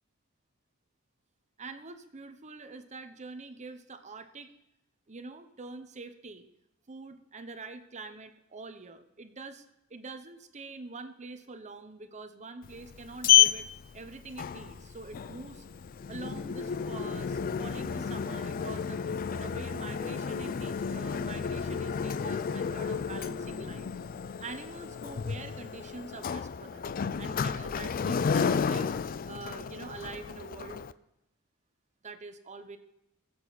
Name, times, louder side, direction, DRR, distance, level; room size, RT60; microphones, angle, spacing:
voice 1, 1.6-4.5 5.1-6.5 6.9-9.6 9.9-15.6 16.1-23.9 24.4-26.9 27.2-28.9 29.3-30.8 32.0-32.8, right 3 dB, 35° right, 9 dB, 0.9 m, -45 dB
Sliding door, 12.6-30.9, left 8 dB, 40° left, 0.4 m, -31 dB
19.5 x 7.9 x 4.1 m, 0.89 s
head